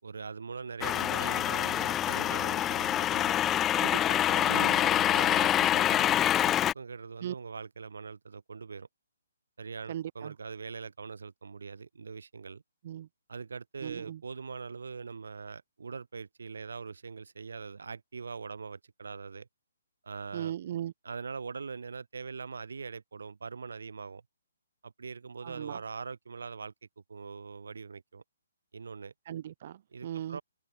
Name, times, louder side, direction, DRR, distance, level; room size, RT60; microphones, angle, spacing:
voice 1, 0.0-3.4 4.2-8.9 9.6-12.6 13.3-19.5 20.0-20.5 21.0-24.2 24.8-26.7 27.1-28.2 28.7-29.1 29.9-30.4, right 5 dB, 80° right, 5.6 m, -42 dB
sound 1, 0.8-6.7, left 11 dB, 10° left, 0.6 m, -26 dB
voice 2, 3.7-4.8 7.2-7.3 9.9-10.3 12.8-13.1 13.8-14.2 20.3-20.9 25.4-25.8 29.3-30.4, right 11 dB, 35° right, 1.4 m, -38 dB
hypercardioid pair, 175°, 0 cm